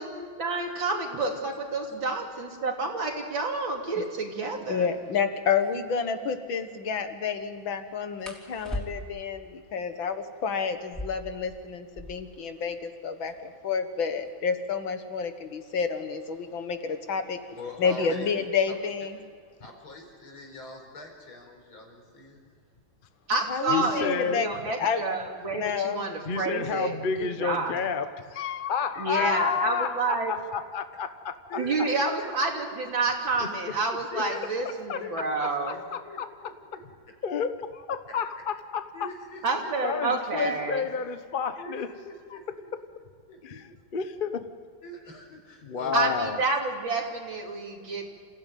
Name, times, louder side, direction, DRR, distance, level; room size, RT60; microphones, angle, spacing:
voice 1, 0.0-4.9 23.3-27.8 29.0-30.3 31.6-35.8 39.4-40.9 45.9-48.1, right 3 dB, 70° right, 1 dB, 3.6 m, -29 dB
voice 2, 4.7-17.4 17.8-19.2 23.5-24.5 24.8-25.0 25.5-26.1, left 6 dB, 70° left, 8 dB, 2.2 m, -29 dB
sound 1, 5.5-5.7 8.2-9.3 10.8-12.4 12.7-12.8 13.0-13.6 14.2-16.8 17.8-18.1 18.5-19.0 19.3-20.0, equal, ahead, 3.6 m, -41 dB
voice 3, 17.5-18.3 18.7-18.8 19.6-22.4 28.9-29.3 31.5-32.6 34.1-34.6 35.0-35.2 36.0-36.8 38.1-38.2 38.9-39.7 41.6-42.7 43.3-43.4 43.7-43.8 44.8-46.2, left 2 dB, 90° left, 2 dB, 5.4 m, -42 dB
voice 4, 23.7-24.4 26.2-31.3 33.6-33.7 34.1-34.2 34.9-35.0 35.7-36.3 37.2-38.9 39.8-41.9 43.4-44.5 45.6-46.4, left 6 dB, 35° left, 9 dB, 0.8 m, -30 dB
28.0 x 16.0 x 9.2 m, 2.1 s
omnidirectional pair, 2.2 m